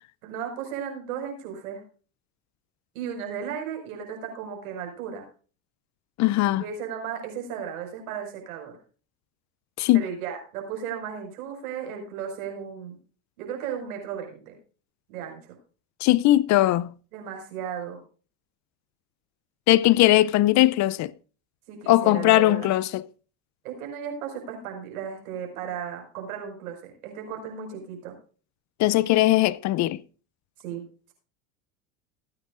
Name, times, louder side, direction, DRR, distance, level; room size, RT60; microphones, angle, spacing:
voice 1, 0.2-1.8 3.0-5.3 6.4-8.8 9.9-13.0 13.4-14.6 15.1-15.5 17.1-18.0 21.7-22.7 23.6-28.2 30.6-30.8, right 8 dB, 85° right, 5.3 m, -35 dB
voice 2, 6.2-6.6 9.8-10.1 16.0-16.9 19.7-21.1 21.9-23.1 28.8-30.0, left 16 dB, 45° left, 0.5 m, -20 dB
19.0 x 9.6 x 2.5 m
supercardioid pair, 110°, 42 cm